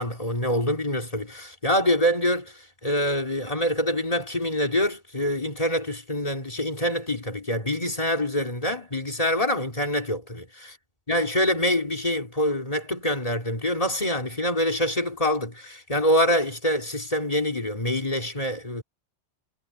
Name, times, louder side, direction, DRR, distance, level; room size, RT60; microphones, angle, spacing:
voice 1, 0.0-2.5 2.8-10.8 11.1-18.8, left 1 dB, 30° left, 3.3 m, -25 dB
omnidirectional pair, 1.2 m